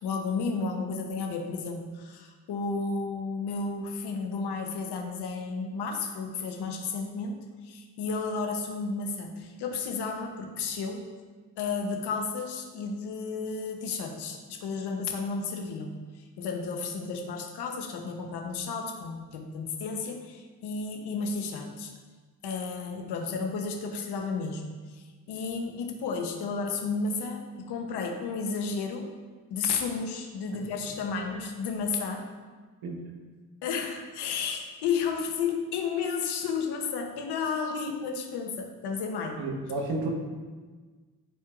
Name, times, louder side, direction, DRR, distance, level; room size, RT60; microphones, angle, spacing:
voice 1, 0.0-7.4 7.6-11.0 11.6-21.9 22.4-29.1 29.5-32.3 33.6-39.4, left 4 dB, 85° left, 3 dB, 1.0 m, -32 dB
voice 2, 39.4-40.1, right 2 dB, 75° right, 1 dB, 1.3 m, -31 dB
12.5 x 4.5 x 2.5 m, 1.4 s
supercardioid pair, 45°, 39 cm